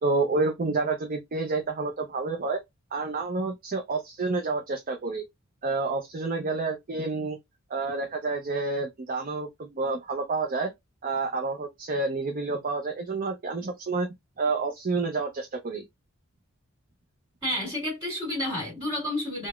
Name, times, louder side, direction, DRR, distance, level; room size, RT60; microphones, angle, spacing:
voice 1, 0.0-2.6 2.9-5.2 5.6-7.4 7.7-10.7 11.0-14.1 14.4-15.8, right 3 dB, 40° right, 0.5 m, -29 dB
voice 2, 17.4-19.5, left 1 dB, 25° right, 1.8 m, -30 dB
3.8 x 2.1 x 2.3 m
head